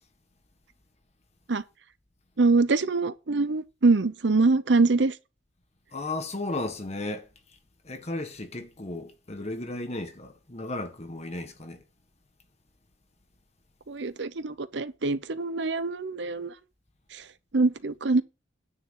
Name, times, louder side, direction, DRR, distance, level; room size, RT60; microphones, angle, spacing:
voice 1, 2.4-5.1 13.9-16.5 17.1-17.2 17.5-18.2, right 3 dB, 60° right, 0.7 m, -24 dB
voice 2, 5.9-7.3 7.8-11.8, left 2 dB, 35° left, 1.5 m, -34 dB
9.8 x 4.6 x 7.4 m
head